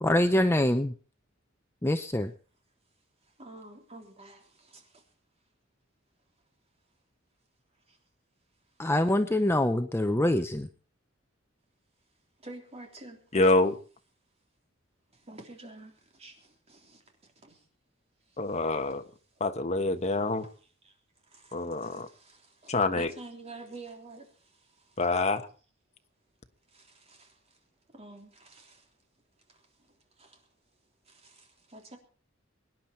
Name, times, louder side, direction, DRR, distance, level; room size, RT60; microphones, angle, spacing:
voice 1, 0.0-0.9 1.8-2.3 8.8-10.7, left 1 dB, 10° left, 0.7 m, -25 dB
voice 2, 3.4-5.0 7.9-8.0 12.4-13.2 15.1-17.6 18.9-19.0 19.4-19.5 20.4-20.5 20.8-20.9 21.2-25.0 26.7-27.6 27.9-28.9 29.5-29.6 30.2-30.4 31.1-32.0, right 2 dB, 30° right, 3.4 m, -49 dB
voice 3, 13.3-13.8 18.4-19.0 19.4-20.5 21.5-22.1 22.7-23.1 25.0-25.5, left 2 dB, 35° left, 1.3 m, -26 dB
24.0 x 10.5 x 4.5 m
head